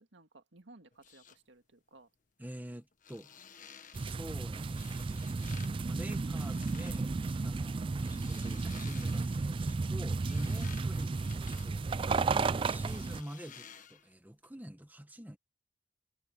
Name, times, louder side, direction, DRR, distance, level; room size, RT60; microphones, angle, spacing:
voice 1, 0.0-2.1, right 2 dB, 75° right, 2.0 m, -58 dB
sound 1, 0.9-1.4 2.9-4.1 4.8-5.7 6.0-7.0 7.8-9.5 10.0-12.4 12.8-14.1 14.4-14.5, left 7 dB, 45° left, 1.5 m, -54 dB
voice 2, 2.4-3.4 4.0-5.3 5.8-11.8 12.2-15.4, equal, 10° right, 1.3 m, -46 dB
sound 2, 3.9-13.2, right 4 dB, 30° right, 0.3 m, -33 dB
head